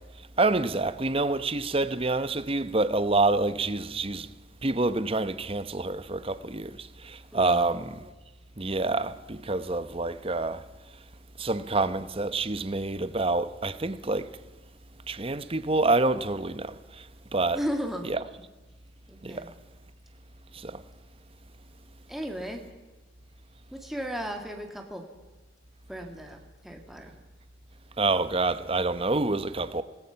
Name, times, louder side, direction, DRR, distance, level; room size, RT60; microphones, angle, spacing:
voice 1, 0.4-4.3 4.6-7.9 8.6-10.6 11.4-14.3 15.1-17.1 17.3-17.6 18.1-18.2 19.2-19.5 20.5-20.8 28.0-29.8, right 3 dB, 30° right, 0.9 m, -27 dB
voice 2, 7.3-7.9 17.5-18.1 19.1-19.5 22.1-22.6 23.7-25.0 25.9-27.1, equal, ahead, 1.9 m, -35 dB
26.5 x 19.0 x 5.8 m
head